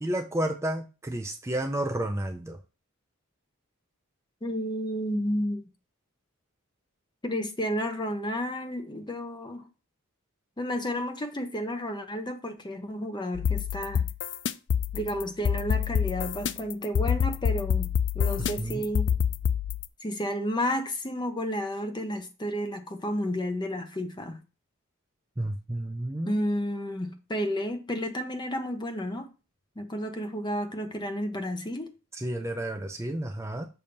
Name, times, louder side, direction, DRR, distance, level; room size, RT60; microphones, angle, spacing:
voice 1, 0.0-2.6 18.6-18.9 25.4-26.4 32.1-33.7, right 1 dB, 15° right, 0.4 m, -31 dB
voice 2, 4.4-5.7 7.2-9.6 10.6-14.0 14.9-17.9 18.1-19.1 20.0-24.4 26.3-29.3 29.8-31.9, equal, 20° left, 0.7 m, -31 dB
sound 1, 13.3-19.9, left 8 dB, 55° left, 0.3 m, -27 dB
6.8 x 2.8 x 5.1 m
head